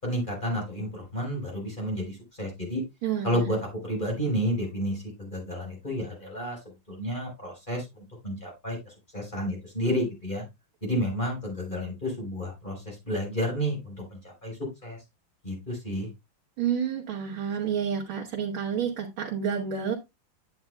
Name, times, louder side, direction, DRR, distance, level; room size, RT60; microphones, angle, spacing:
voice 1, 0.0-2.8 3.2-3.6 3.8-6.6 6.9-7.9 8.2-10.4 10.8-15.0 15.4-16.1, equal, 25° left, 4.1 m, -31 dB
voice 2, 3.0-3.5 16.6-20.0, right 7 dB, 90° right, 2.1 m, -29 dB
9.4 x 8.8 x 2.2 m
omnidirectional pair, 2.1 m